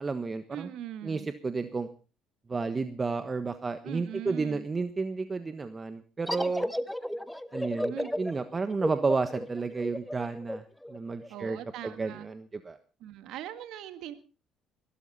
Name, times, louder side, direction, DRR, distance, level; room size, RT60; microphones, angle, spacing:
voice 1, 0.0-0.7 1.0-1.9 2.5-6.7 7.5-10.6 10.9-11.6 11.8-12.8, right 4 dB, 30° right, 10 dB, 1.3 m, -31 dB
voice 2, 0.5-1.3 3.8-4.7 7.9-8.1 11.3-12.3 13.0-14.1, right 11 dB, 75° right, 10 dB, 1.8 m, -40 dB
sound 1, 6.3-11.6, left 1 dB, 5° left, 1.1 m, -34 dB
21.5 x 13.0 x 4.3 m, 0.36 s
supercardioid pair, 70°, 0 cm